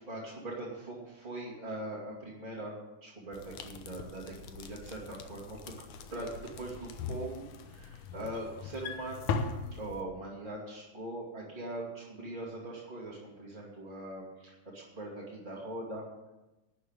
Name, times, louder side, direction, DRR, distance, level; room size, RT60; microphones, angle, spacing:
voice 1, 0.0-2.7 3.0-5.7 6.1-6.3 6.6-6.7 7.1-9.3 9.7-16.0, right 1 dB, 15° right, -8 dB, 2.1 m, -41 dB
sound 1, 3.3-10.0, left 5 dB, 75° left, 2.3 m, -40 dB
12.5 x 6.5 x 8.9 m, 1.0 s
omnidirectional pair, 3.6 m